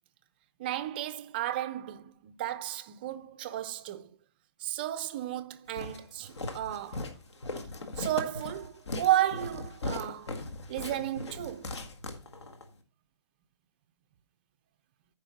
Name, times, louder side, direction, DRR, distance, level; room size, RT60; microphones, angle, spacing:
voice 1, 0.6-4.1 4.6-7.0 8.0-10.4 10.7-11.7, right 13 dB, 20° right, 0.5 m, -33 dB
Walk footsteps, 5.8-12.7, left 2 dB, 65° left, 1.8 m, -39 dB
13.0 x 5.3 x 4.1 m
hypercardioid pair, 165°, 15 cm